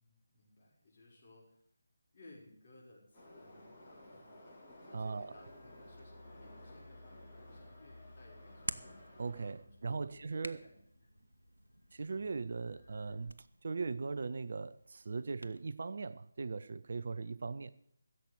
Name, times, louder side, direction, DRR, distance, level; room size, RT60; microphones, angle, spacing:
voice 1, 0.0-1.6 2.1-8.8 9.5-11.2, left 2 dB, 35° left, 5.9 m, -61 dB
Subway metro underground, 3.1-9.5, left 1 dB, 15° left, 4.3 m, -56 dB
voice 2, 4.9-5.4 9.2-10.6 11.9-17.8, right 4 dB, 45° right, 0.5 m, -39 dB
sound 1, 5.3-13.2, left 2 dB, 50° left, 2.9 m, -59 dB
Hands, 7.2-15.6, right 1 dB, 80° right, 0.9 m, -51 dB
16.0 x 7.4 x 8.3 m
figure-of-eight pair, 155°, 0 cm